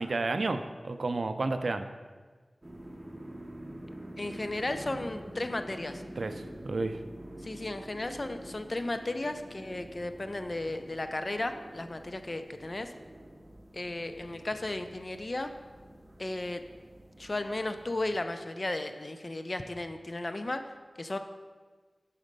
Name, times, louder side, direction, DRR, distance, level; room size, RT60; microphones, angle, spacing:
voice 1, 0.0-1.9 6.2-7.0, right 3 dB, 75° right, 9 dB, 0.4 m, -31 dB
sound 1, 2.6-18.2, right 1 dB, 25° right, 0.8 m, -47 dB
voice 2, 4.2-6.0 7.4-12.9 13.7-15.5 16.2-16.6 17.2-20.6 21.0-21.2, left 2 dB, 45° left, 8 dB, 0.4 m, -35 dB
6.1 x 4.3 x 5.1 m, 1.4 s
wide cardioid pair, 70°, 0 cm